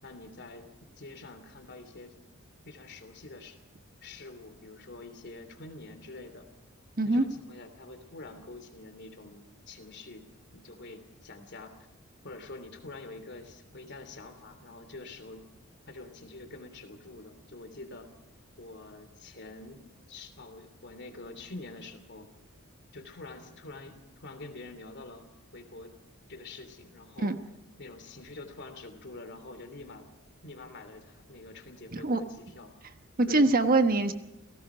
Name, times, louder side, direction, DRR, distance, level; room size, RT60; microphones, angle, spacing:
voice 1, 0.0-2.2 2.6-3.6 4.0-6.5 7.0-10.2 10.5-11.7 12.2-15.5 15.9-18.1 18.6-19.8 20.1-22.3 22.9-25.3 25.5-25.9 26.3-27.3 27.8-30.1 30.4-32.7 33.3-33.5, left 2 dB, 55° left, 8 dB, 3.1 m, -46 dB
voice 2, 33.2-34.1, right 2 dB, 45° right, 8 dB, 1.2 m, -23 dB
30.0 x 17.5 x 5.1 m, 0.93 s
head